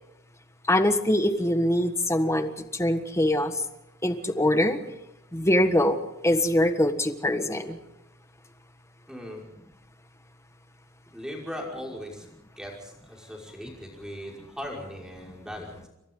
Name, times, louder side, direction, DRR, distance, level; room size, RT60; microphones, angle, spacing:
voice 1, 0.7-3.5 4.0-4.8 5.3-7.8, left 1 dB, 15° left, 8 dB, 1.5 m, -23 dB
voice 2, 9.1-9.4 11.1-12.3 12.6-15.9, equal, 5° right, -1 dB, 5.6 m, -39 dB
29.0 x 24.5 x 3.9 m, 0.93 s
head